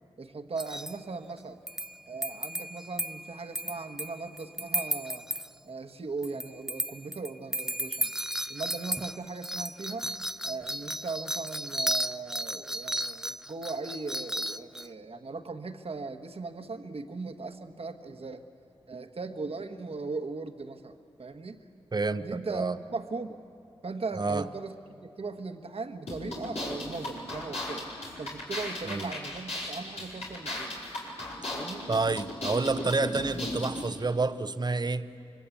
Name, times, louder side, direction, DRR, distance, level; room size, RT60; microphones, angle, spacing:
voice 1, 0.2-1.6 2.1-5.2 5.6-8.1 8.5-10.1 10.4-18.4 18.9-21.6 22.2-23.4 23.8-24.8 25.0-27.9 28.2-30.8 31.5-31.9, right 4 dB, 65° right, 7 dB, 1.3 m, -38 dB
ensemble of bells, 0.6-1.0 1.7-5.5 6.2-14.9, right 1 dB, 5° right, 0.5 m, -34 dB
voice 2, 21.9-22.8 24.2-24.4 28.9-29.1 31.9-35.1, right 3 dB, 40° right, 12 dB, 0.8 m, -29 dB
sound 1, 26.1-33.9, left 1 dB, 90° left, 4.8 m, -36 dB
26.0 x 22.0 x 8.5 m, 2.6 s
cardioid pair, 45°, 11 cm